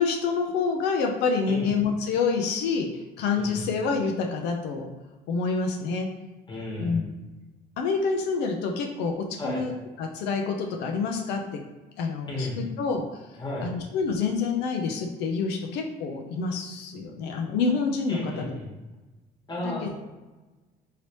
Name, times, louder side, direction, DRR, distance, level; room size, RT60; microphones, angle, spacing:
voice 1, 0.0-4.9 5.3-6.1 6.8-7.1 7.8-9.7 10.0-11.6 12.0-13.1 13.6-18.5 19.8-19.9, left 5 dB, 90° left, 2 dB, 0.4 m, -27 dB
voice 2, 6.5-7.0 9.4-9.6 12.3-12.6 13.4-13.7 18.1-18.7 19.5-19.9, left 1 dB, 25° left, -3 dB, 1.2 m, -33 dB
3.1 x 2.8 x 2.9 m, 1.2 s
cardioid pair, 110°, 17 cm